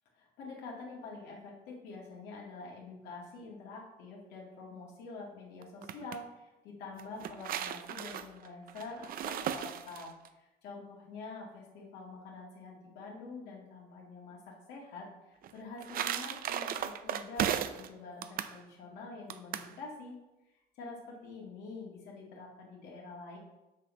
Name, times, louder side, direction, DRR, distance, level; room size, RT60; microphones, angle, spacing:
voice 1, 0.2-20.1 20.8-23.4, left 3 dB, 85° left, -3 dB, 1.9 m, -46 dB
sound 1, 5.6-6.2 7.0-10.3 15.4-17.9 18.2-18.6 19.3-19.7, right 10 dB, 60° right, 0.5 m, -36 dB
6.4 x 6.2 x 5.4 m, 1.0 s
cardioid pair, 110°, 17 cm